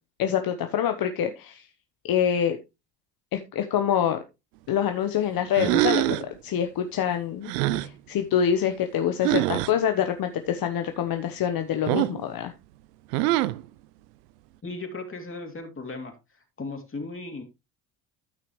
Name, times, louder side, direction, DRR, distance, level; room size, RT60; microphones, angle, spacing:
voice 1, 0.2-1.7 2.0-2.6 3.3-4.2 4.7-6.2 6.4-12.5, left 9 dB, 50° left, 6 dB, 1.1 m, -26 dB
sound 1, 5.5-6.3 7.5-7.9 9.2-9.7 11.9-12.2 13.1-13.6, right 17 dB, 85° right, 0.6 m, -24 dB
voice 2, 14.6-16.1 16.6-17.4, left 3 dB, 25° left, 4 dB, 3.0 m, -36 dB
13.5 x 5.9 x 3.1 m, 0.25 s
hypercardioid pair, 70°, 46 cm